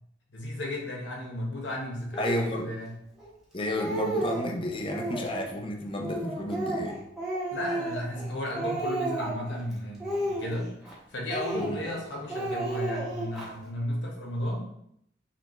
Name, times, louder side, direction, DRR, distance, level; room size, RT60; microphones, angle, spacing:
voice 1, 0.3-2.9 7.5-10.7 11.1-14.7, left 1 dB, 85° left, -2 dB, 1.2 m, -34 dB
Speech, 2.1-2.5 3.2-3.3 3.6-4.5 4.9-5.5 6.0-8.3 8.6-9.5 10.0-10.9 11.3-12.0 12.3-13.5, right 1 dB, ahead, 0.9 m, -32 dB
voice 2, 2.2-2.7 3.5-7.0 11.5-11.8, left 1 dB, 30° left, 1 dB, 0.5 m, -32 dB
5.7 x 2.3 x 3.0 m, 0.73 s
head